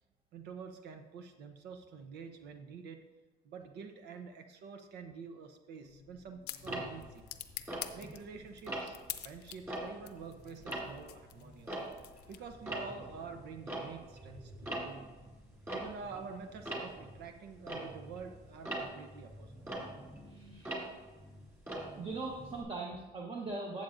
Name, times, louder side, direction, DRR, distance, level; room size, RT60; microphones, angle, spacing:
voice 1, 0.3-3.0 3.4-7.2 7.9-9.0 9.2-11.8 12.3-15.1 15.7-19.6, right 5 dB, 75° right, 6 dB, 0.8 m, -48 dB
sound 1, 5.8-12.7, left 12 dB, 75° left, 0.6 m, -48 dB
Tick-tock, 6.6-8.3 8.7-9.1 9.5-12.3 12.5-22.6, right 1 dB, 15° right, 2.6 m, -43 dB
voice 2, 20.3-20.9 22.0-23.8, right 3 dB, 30° right, 0 dB, 1.1 m, -40 dB
12.5 x 7.5 x 2.6 m, 1.2 s
cardioid pair, 110°, 17 cm